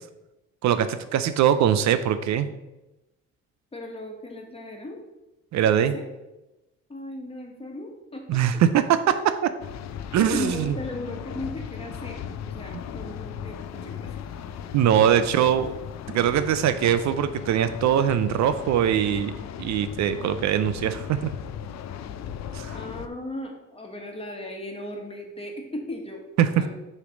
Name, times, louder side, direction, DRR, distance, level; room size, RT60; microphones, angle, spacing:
voice 1, 0.6-2.5 5.5-5.9 8.3-9.2 10.1-10.8 14.7-15.7 16.1-19.3 19.6-21.3 22.5-22.8 26.4-26.6, right 9 dB, 65° right, 11 dB, 0.4 m, -22 dB
voice 2, 3.7-5.0 5.6-6.0 6.9-8.6 10.3-14.1 14.9-15.3 22.7-26.2 26.6-26.7, left 1 dB, 20° left, 2 dB, 1.3 m, -37 dB
sound 1, 9.6-23.1, left 8 dB, 65° left, 0.5 m, -37 dB
6.6 x 3.2 x 5.0 m, 1.0 s
cardioid pair, 90°, 30 cm